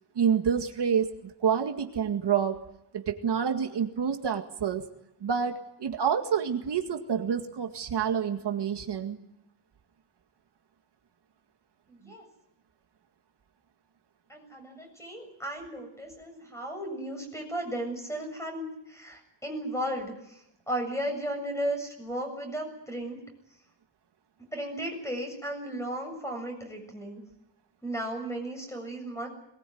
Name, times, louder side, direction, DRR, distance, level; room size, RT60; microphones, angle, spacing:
voice 1, 0.2-2.6 2.9-4.9 5.2-9.2, right 7 dB, 70° right, 5 dB, 2.1 m, -28 dB
voice 2, 11.9-12.3 14.3-23.2 24.5-27.2 27.8-29.3, right 1 dB, 5° left, 3 dB, 7.3 m, -35 dB
22.5 x 21.0 x 9.4 m, 0.80 s
wide cardioid pair, 155°, 42 cm